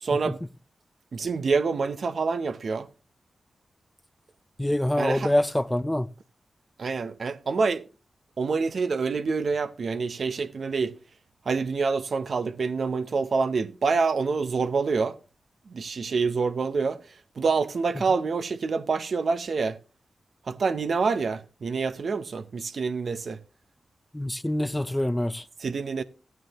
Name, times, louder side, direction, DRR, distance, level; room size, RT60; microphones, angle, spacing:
voice 1, 0.0-0.4 1.1-2.9 5.0-5.3 6.8-7.9 8.4-11.0 11.4-15.2 15.7-17.0 17.4-19.8 20.5-23.4 25.6-26.0, right 4 dB, 65° right, 0.7 m, -26 dB
voice 2, 4.6-6.1 24.1-25.4, left 1 dB, 10° left, 0.4 m, -25 dB
14.5 x 9.3 x 2.9 m
cardioid pair, 70°, 0 cm